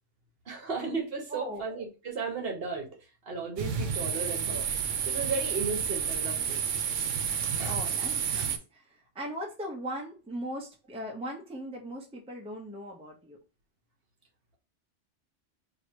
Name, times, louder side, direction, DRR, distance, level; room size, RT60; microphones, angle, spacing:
voice 1, 0.4-4.7 5.1-6.6 7.6-7.8, right 4 dB, 55° right, 1 dB, 1.1 m, -35 dB
voice 2, 1.3-1.6 7.7-13.4, equal, 5° right, 1 dB, 0.7 m, -39 dB
sound 1, 3.6-8.6, right 7 dB, 85° right, 1.0 m, -30 dB
3.0 x 2.8 x 4.4 m, 0.32 s
omnidirectional pair, 1.2 m